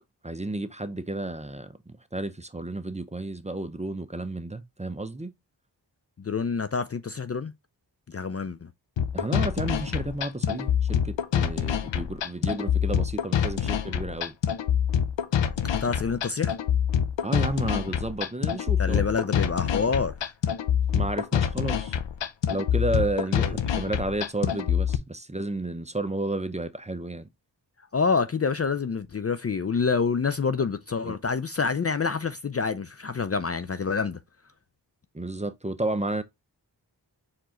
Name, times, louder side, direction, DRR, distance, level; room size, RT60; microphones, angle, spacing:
voice 1, 0.2-5.3 9.1-14.3 17.2-19.0 20.9-22.0 22.5-27.3 31.0-31.1 35.1-36.2, right 2 dB, 15° right, 0.6 m, -32 dB
voice 2, 6.2-7.5 8.1-8.7 15.8-16.6 18.8-20.1 23.4-23.6 27.9-34.2, left 5 dB, 35° left, 0.4 m, -27 dB
sound 1, 9.0-25.0, left 8 dB, 75° left, 0.7 m, -26 dB
4.7 x 3.7 x 2.9 m
cardioid pair, 40°, 44 cm